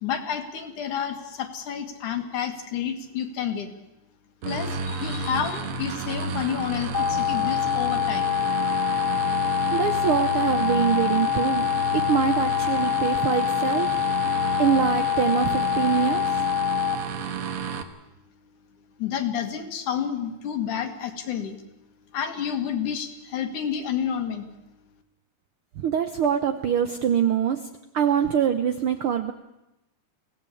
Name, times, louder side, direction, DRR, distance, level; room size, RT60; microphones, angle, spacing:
voice 1, 0.0-3.7 4.4-8.3 19.0-21.6 22.1-24.5, left 8 dB, 80° left, 6 dB, 3.3 m, -30 dB
sound 1, 4.4-17.8, right 5 dB, 55° right, 2.0 m, -31 dB
sound 2, 6.9-17.0, left 12 dB, 55° left, 2.6 m, -25 dB
voice 2, 9.7-11.7 11.9-13.9 14.6-16.2 25.8-27.6 27.9-29.3, right 8 dB, 70° right, 9 dB, 1.3 m, -24 dB
23.5 x 17.0 x 8.5 m, 0.96 s
omnidirectional pair, 3.5 m